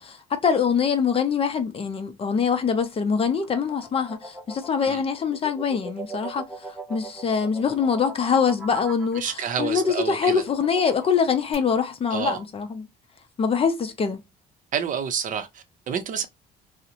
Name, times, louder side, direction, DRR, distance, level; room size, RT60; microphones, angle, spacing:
voice 1, 0.0-6.5 6.9-12.9 13.4-14.2, left 6 dB, 35° left, 0.5 m, -24 dB
sound 1, 3.1-11.5, right 2 dB, 5° right, 0.7 m, -40 dB
voice 2, 9.2-10.4 12.1-12.4 14.7-16.3, right 7 dB, 50° right, 0.6 m, -29 dB
2.6 x 2.0 x 2.7 m
cardioid pair, 110°, 17 cm